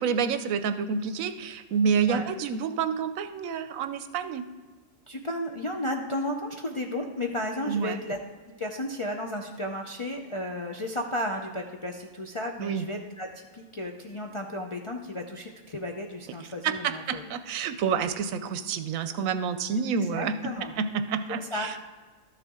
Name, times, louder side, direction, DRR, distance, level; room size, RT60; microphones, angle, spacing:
voice 1, 0.0-4.4 7.7-8.0 12.6-12.8 16.6-20.3 20.6-21.8, right 6 dB, 85° right, 11 dB, 1.0 m, -28 dB
voice 2, 5.1-8.2 8.5-17.2 20.1-20.7 21.4-21.7, left 1 dB, 45° left, 1 dB, 0.4 m, -33 dB
12.5 x 6.8 x 3.6 m, 1.4 s
omnidirectional pair, 1.4 m